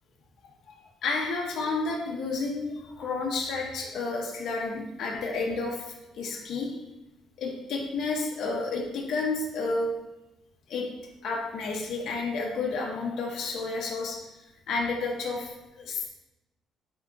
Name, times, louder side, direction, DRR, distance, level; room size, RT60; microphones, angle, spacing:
voice 1, 1.0-5.9 6.2-6.7 7.4-9.9 10.7-10.9 11.2-14.2 14.7-16.0, left 3 dB, 55° left, -1 dB, 0.8 m, -31 dB
3.7 x 3.5 x 3.8 m, 0.96 s
cardioid pair, 165°, 0 cm